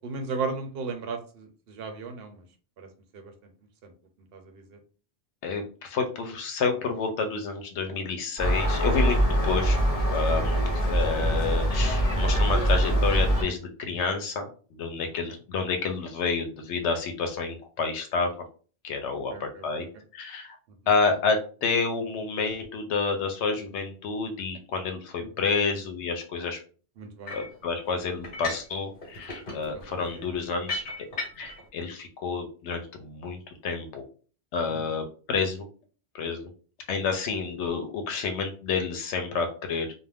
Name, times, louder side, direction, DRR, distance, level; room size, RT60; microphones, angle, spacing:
voice 1, 0.0-2.4 2.8-2.9 3.1-3.3 3.8-3.9 4.3-4.8 19.3-19.8 25.4-25.5 27.0-27.4 29.7-29.8 30.2-30.3 34.7-34.9, right 4 dB, 65° right, 5 dB, 0.8 m, -36 dB
voice 2, 5.4-9.8 10.1-18.3 18.8-19.9 20.1-20.6 20.9-26.6 27.3-30.8 31.4-34.0 34.5-35.7 36.1-36.5 36.9-39.9, left 4 dB, 80° left, 5 dB, 0.9 m, -29 dB
Gull seagull, 8.4-13.4, right 1 dB, 35° left, 0.8 m, -23 dB
sound 1, 27.3-27.6 28.2-28.7 29.0-31.6, left 3 dB, 50° left, 1.2 m, -36 dB
2.4 x 2.1 x 3.3 m, 0.38 s
omnidirectional pair, 1.2 m